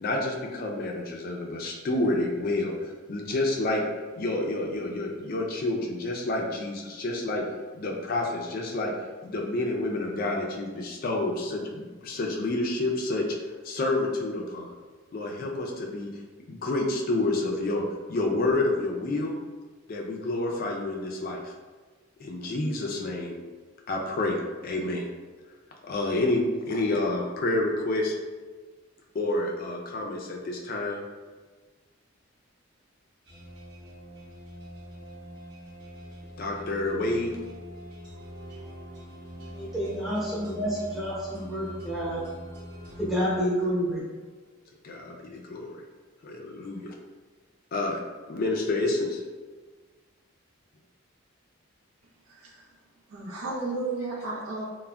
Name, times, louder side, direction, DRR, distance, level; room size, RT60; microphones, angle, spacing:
voice 1, 0.0-3.8 4.2-7.4 7.8-8.9 9.2-13.2 13.6-14.7 15.1-16.1 16.5-17.8 18.1-19.3 19.9-21.5 22.2-23.4 23.9-24.4 24.6-25.1 25.8-28.1 29.1-31.0 36.4-37.3 44.8-45.8 46.2-46.9 47.7-48.0 48.3-49.2, left 2 dB, 45° left, 0 dB, 0.3 m, -29 dB
sound 1, 33.3-43.9, equal, 55° right, 0.8 m, -44 dB
voice 2, 39.5-42.2 43.0-44.0, equal, ahead, -8 dB, 0.7 m, -29 dB
voice 3, 52.3-52.6 53.1-54.6, right 3 dB, 85° right, -3 dB, 0.6 m, -33 dB
3.4 x 2.0 x 2.2 m, 1.4 s
head